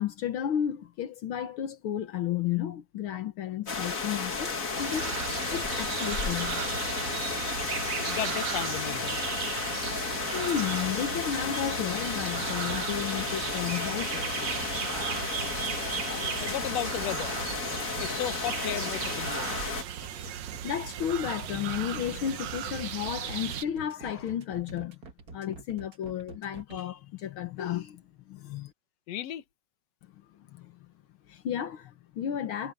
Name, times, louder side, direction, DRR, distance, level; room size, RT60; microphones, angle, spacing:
voice 1, 0.0-5.1 5.5-6.7 9.9-10.0 10.3-14.3 17.8-17.9 20.0-20.1 20.6-25.0 25.3-28.7 30.5-30.8 31.3-32.7, left 10 dB, 80° left, 1.1 m, -33 dB
sound 1, 3.7-19.8, left 4 dB, 30° left, 1.7 m, -33 dB
sound 2, 4.8-23.7, right 10 dB, 65° right, 2.1 m, -36 dB
voice 2, 7.5-9.2 16.1-17.4 18.0-19.5 29.1-29.4, left 12 dB, 60° left, 2.1 m, -35 dB
sound 3, 10.7-26.8, right 4 dB, 45° right, 1.3 m, -47 dB
omnidirectional pair, 3.9 m